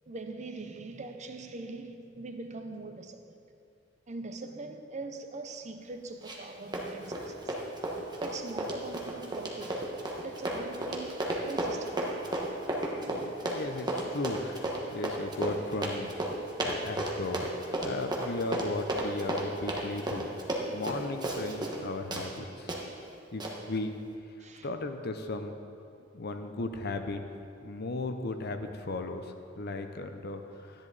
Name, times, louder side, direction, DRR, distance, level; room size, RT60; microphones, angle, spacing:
voice 1, 0.1-3.4 4.1-7.5 8.2-9.9 10.2-11.2 11.5-12.1 24.4-24.7, right 3 dB, 40° right, 0.7 m, -42 dB
Run, 6.2-6.5 6.7-21.8 22.1-22.3 22.7-22.8 23.4-23.5, right 1 dB, 20° right, 1.3 m, -33 dB
voice 2, 13.1-16.1 16.6-17.4 17.8-20.3 20.7-22.7 23.3-23.4 23.7-23.9 24.6-25.5 26.1-27.2 27.6-30.9, left 2 dB, 55° left, 0.8 m, -36 dB
13.5 x 10.5 x 4.1 m
head